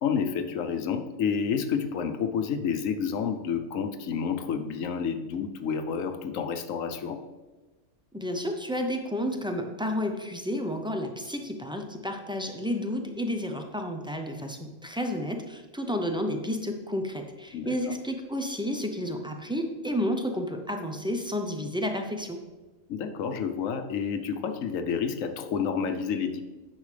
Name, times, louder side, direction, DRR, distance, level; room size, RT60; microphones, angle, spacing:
voice 1, 0.0-7.2 17.5-17.8 22.9-26.4, left 6 dB, 85° left, 8 dB, 1.1 m, -29 dB
voice 2, 8.1-22.4, equal, 5° right, 4 dB, 0.3 m, -31 dB
10.0 x 6.4 x 3.3 m, 1.2 s
omnidirectional pair, 1.3 m